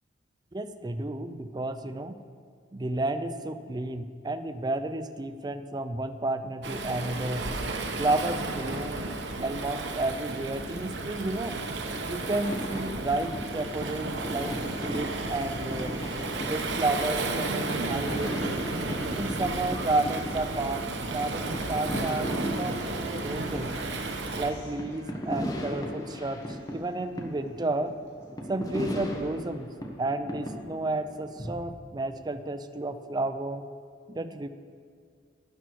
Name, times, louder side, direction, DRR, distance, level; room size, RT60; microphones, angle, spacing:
voice 1, 0.5-2.2 2.7-7.4 8.0-9.1 9.4-11.6 12.0-15.9 16.4-18.5 19.1-20.9 21.1-23.7 24.3-27.9 28.5-29.7 30.0-33.6 34.1-34.5, right 2 dB, 25° right, 9 dB, 0.5 m, -31 dB
Waves surf, 6.6-24.5, right 2 dB, 70° right, 1.0 m, -33 dB
sound 1, 12.2-31.5, equal, 20° left, 1.2 m, -37 dB
sound 2, 13.2-16.8 17.3-20.7 21.2-26.0 26.3-27.2 27.5-28.2, left 1 dB, 65° left, 3.3 m, -54 dB
12.0 x 9.6 x 4.7 m, 2.1 s
head